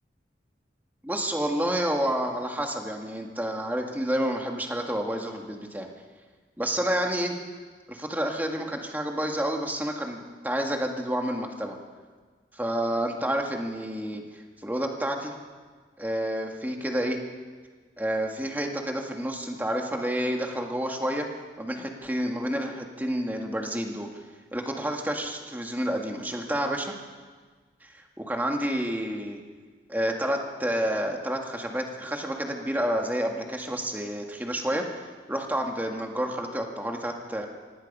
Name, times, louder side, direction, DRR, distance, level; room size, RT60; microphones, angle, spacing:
voice 1, 1.0-5.9 6.6-7.3 7.9-11.7 12.5-15.3 16.0-17.2 18.0-21.3 21.6-24.1 24.5-26.9 27.8-27.9 28.2-29.4 29.9-35.0 35.3-37.5, equal, 10° right, 2 dB, 1.9 m, -29 dB
25.5 x 18.5 x 5.5 m, 1.5 s
head